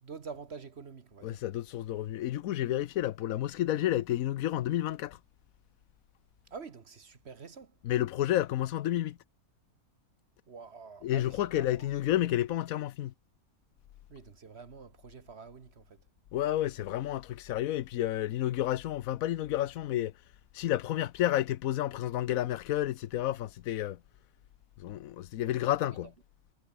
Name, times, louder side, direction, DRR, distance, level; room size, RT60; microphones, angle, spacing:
voice 1, 0.0-1.4 6.5-7.7 10.5-11.9 14.1-16.0 25.8-26.0, right 5 dB, 50° right, 1.4 m, -47 dB
voice 2, 1.2-5.2 7.8-9.2 11.0-13.1 16.3-20.1 20.5-24.0 24.8-26.1, left 13 dB, 75° left, 1.1 m, -30 dB
omnidirectional pair, 1.5 m